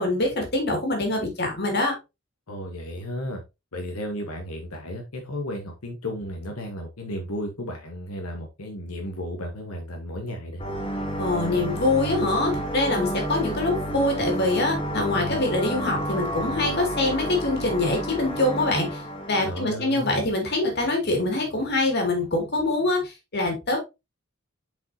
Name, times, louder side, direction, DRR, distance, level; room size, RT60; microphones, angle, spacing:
voice 1, 0.0-2.0 11.2-19.0 19.3-23.8, left 2 dB, 50° left, 2 dB, 2.4 m, -24 dB
voice 2, 2.5-3.4 3.7-10.6 19.4-20.3, left 1 dB, 90° left, 3 dB, 1.2 m, -34 dB
sound 1, 10.6-19.6, equal, 25° left, 1.2 m, -30 dB
7.1 x 5.2 x 2.8 m, 0.24 s
head